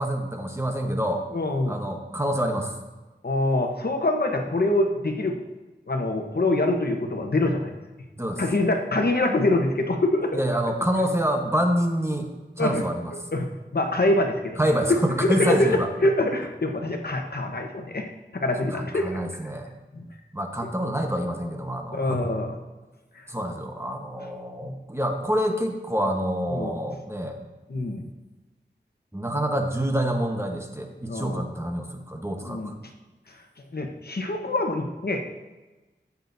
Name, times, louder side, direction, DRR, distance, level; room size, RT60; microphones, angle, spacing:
voice 1, 0.0-1.2 1.7-2.7 8.2-8.4 10.3-12.3 12.6-13.1 14.6-15.9 18.7-19.7 20.3-22.3 23.3-27.4 29.1-32.7, equal, 15° right, 3 dB, 1.2 m, -27 dB
voice 2, 1.3-1.8 3.2-5.4 5.9-7.7 8.4-10.4 12.6-12.9 13.3-14.6 14.9-18.1 18.3-19.2 19.9-20.0 21.9-22.5 24.6-24.7 26.5-27.0 27.7-28.1 31.0-31.5 32.4-32.7 33.7-35.2, left 2 dB, 55° left, 3 dB, 1.1 m, -25 dB
15.0 x 8.2 x 2.7 m, 1.1 s
wide cardioid pair, 60°, 19 cm